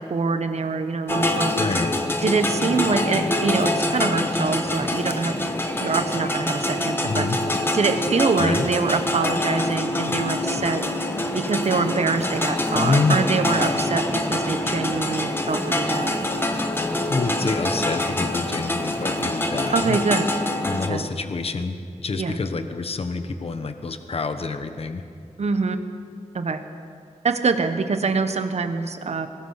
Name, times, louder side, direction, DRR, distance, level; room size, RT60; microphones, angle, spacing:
voice 1, 0.0-1.5 2.2-5.4 5.8-7.3 7.7-10.8 11.3-16.3 19.7-20.3 20.7-21.1 22.2-22.4 25.4-25.9 26.3-26.6 27.2-29.3, right 4 dB, 65° right, 8 dB, 1.4 m, -24 dB
sound 1, 1.1-20.9, left 1 dB, 20° left, 1.4 m, -25 dB
voice 2, 1.5-1.9 7.0-7.4 8.4-8.7 12.7-13.2 17.1-20.0 20.6-25.0, left 4 dB, 55° left, 8 dB, 1.2 m, -27 dB
24.5 x 19.5 x 5.9 m, 2.3 s
wide cardioid pair, 130°, 12 cm